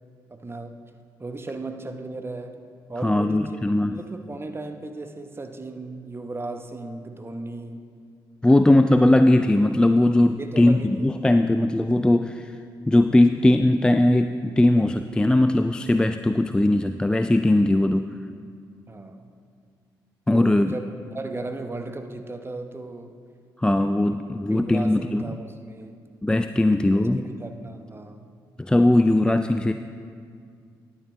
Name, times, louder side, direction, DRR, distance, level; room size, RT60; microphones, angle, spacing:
voice 1, 0.3-0.8 1.2-2.6 2.9-3.6 3.9-7.9 10.4-11.1 18.9-19.3 20.3-23.2 24.1-24.2 24.5-26.0 26.6-26.8 27.1-28.2, right 2 dB, 25° right, 7 dB, 0.9 m, -36 dB
voice 2, 3.0-4.0 8.4-12.5 12.9-18.1 20.3-20.7 23.6-25.3 26.2-27.2 28.6-29.7, left 1 dB, 10° left, 9 dB, 0.3 m, -19 dB
11.5 x 9.6 x 3.2 m, 2.2 s
hypercardioid pair, 40°, 10 cm